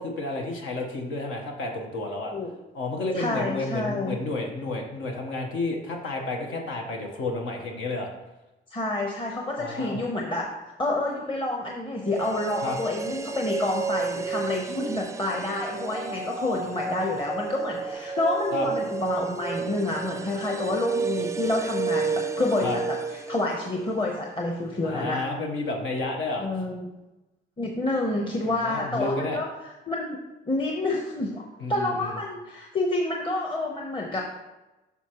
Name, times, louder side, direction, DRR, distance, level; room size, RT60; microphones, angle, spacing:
voice 1, 0.0-2.3 2.7-8.1 9.6-10.0 12.6-12.8 18.5-18.7 22.6-22.8 24.8-26.5 28.5-29.4 31.6-32.2, left 2 dB, 85° left, 1 dB, 1.2 m, -31 dB
voice 2, 3.1-4.2 8.7-10.5 10.8-25.3 26.4-26.9 27.6-30.2 30.5-31.4 31.7-34.2, left 2 dB, 25° left, 0 dB, 0.9 m, -28 dB
sound 1, 12.0-24.1 24.4-24.5, right 4 dB, 15° right, 0.3 m, -31 dB
8.2 x 5.5 x 3.0 m, 1.0 s
cardioid pair, 90°, 20 cm